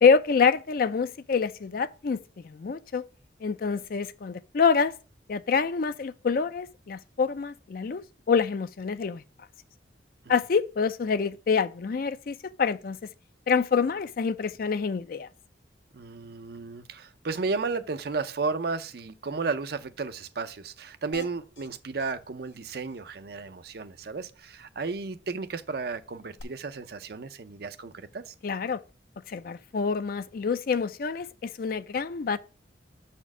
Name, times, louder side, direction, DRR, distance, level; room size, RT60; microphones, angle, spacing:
voice 1, 0.0-3.0 3.4-4.9 5.3-8.0 8.3-9.2 10.3-13.0 13.5-15.3 28.4-28.8 29.3-32.4, left 5 dB, 50° left, 0.4 m, -26 dB
voice 2, 15.9-28.3, right 4 dB, 60° right, 0.5 m, -33 dB
sound 1, 21.1-21.7 22.0-22.1 22.4-22.6 22.9-23.0 26.4-26.5, left 3 dB, 80° left, 1.1 m, -45 dB
5.9 x 4.4 x 6.0 m
head